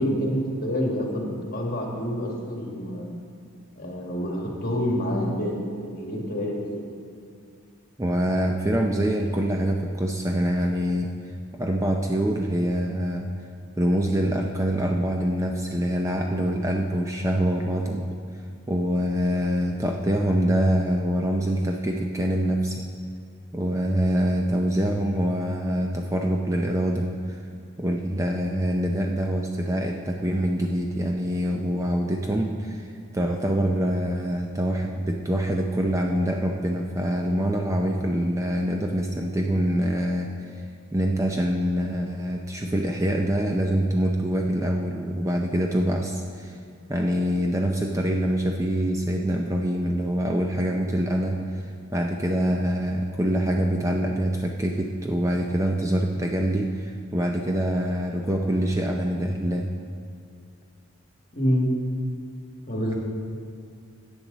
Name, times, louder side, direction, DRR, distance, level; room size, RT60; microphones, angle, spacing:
voice 1, 0.0-3.1 3.8-6.8 61.3-61.7 62.7-63.0, equal, 45° left, -1 dB, 1.8 m, -27 dB
voice 2, 8.0-11.1 11.5-13.3 13.8-18.1 18.7-22.8 23.5-27.4 27.8-32.9 33.1-40.3 40.9-46.5 46.9-51.6 51.9-59.7, equal, 15° right, 2 dB, 0.5 m, -25 dB
14.0 x 8.8 x 4.0 m, 2.3 s
head